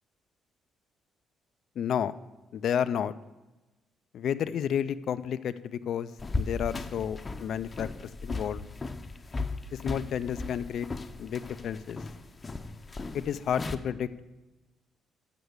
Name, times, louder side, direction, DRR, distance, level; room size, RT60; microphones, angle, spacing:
voice 1, 1.8-2.1 2.5-3.1 4.1-6.1 6.4-8.6 9.8-10.9 11.2-12.0 13.1-14.1, left 9 dB, 70° left, 13 dB, 0.4 m, -31 dB
sound 1, 6.2-13.8, left 3 dB, 25° left, 0.7 m, -37 dB
8.1 x 6.0 x 8.0 m, 1.1 s
cardioid pair, 90°, 0 cm